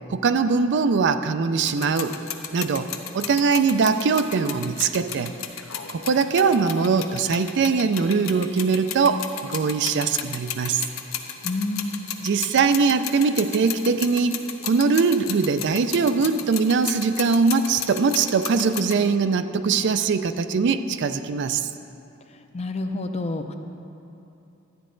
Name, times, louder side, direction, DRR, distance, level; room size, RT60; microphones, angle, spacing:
voice 1, 0.1-2.2 2.5-2.9 3.1-5.3 5.9-10.8 12.2-14.4 14.6-21.7, right 5 dB, 60° right, 10 dB, 0.4 m, -21 dB
sound 1, 1.7-19.1, left 9 dB, 80° left, 0.7 m, -34 dB
voice 2, 11.4-12.1 22.5-23.5, left 2 dB, 30° left, 6 dB, 0.5 m, -28 dB
12.5 x 9.3 x 3.8 m, 2.7 s
head